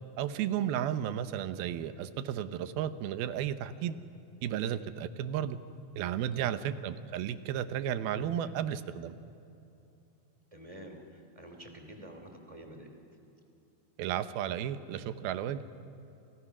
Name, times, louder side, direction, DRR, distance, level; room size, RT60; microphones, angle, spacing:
voice 1, 0.2-3.9 4.4-5.6 6.0-9.1 14.0-15.6, right 10 dB, 85° right, 12 dB, 2.8 m, -33 dB
voice 2, 6.2-6.6 10.5-13.0, right 1 dB, 10° right, 3 dB, 2.6 m, -49 dB
29.0 x 28.5 x 6.1 m, 2.8 s
omnidirectional pair, 4.2 m